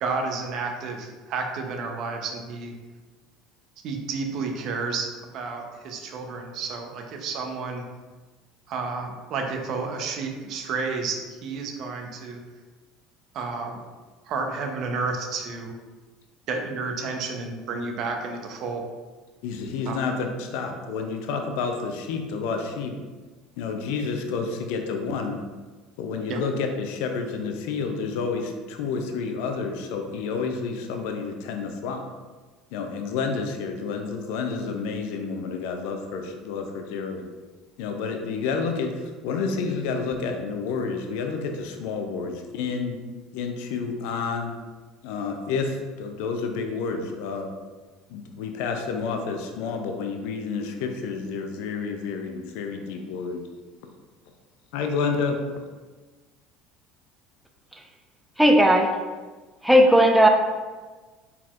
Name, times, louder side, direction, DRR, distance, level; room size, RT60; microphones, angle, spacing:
voice 1, 0.0-2.7 3.8-5.1 5.3-7.8 8.7-12.4 13.3-13.8 14.2-15.7 16.5-18.8 19.9-20.0 26.3-26.4, right 4 dB, 55° right, 3 dB, 0.7 m, -31 dB
voice 2, 19.4-22.9 23.6-25.4 26.0-32.0 32.7-37.3 37.8-43.0 43.3-44.5 45.0-47.5 48.1-53.4 54.7-55.4, left 5 dB, 70° left, 4 dB, 0.5 m, -29 dB
voice 3, 58.4-58.9 59.6-60.3, equal, 5° right, 3 dB, 0.6 m, -15 dB
4.2 x 4.1 x 2.4 m, 1.3 s
hypercardioid pair, 75°, 0 cm